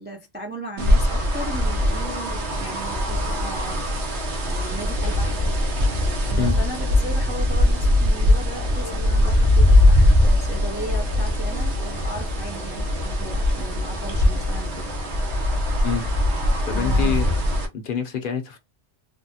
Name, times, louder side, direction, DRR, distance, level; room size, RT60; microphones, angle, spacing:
voice 1, 0.0-5.6 6.2-14.9 15.6-15.7 16.7-17.1, right 1 dB, 15° right, 0.3 m, -36 dB
sound 1, 0.8-17.7, left 1 dB, 85° right, 1.1 m, -21 dB
voice 2, 16.7-17.4 17.7-18.6, left 7 dB, 60° left, 0.7 m, -26 dB
3.3 x 2.1 x 2.7 m
omnidirectional pair, 1.1 m